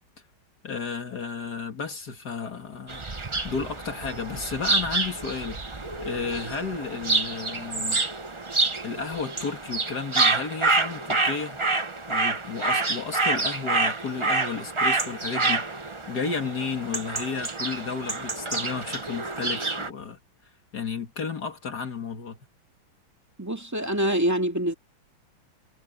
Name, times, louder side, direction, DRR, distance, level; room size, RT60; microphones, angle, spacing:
voice 1, 0.6-3.0 3.4-5.6 6.0-8.0 8.8-11.6 12.1-20.2 20.7-22.4, left 5 dB, 55° left, 2.4 m, -33 dB
sound 1, 2.9-19.9, right 3 dB, 25° right, 0.7 m, -28 dB
voice 2, 23.4-24.7, equal, 10° right, 2.1 m, -25 dB
omnidirectional pair, 2.2 m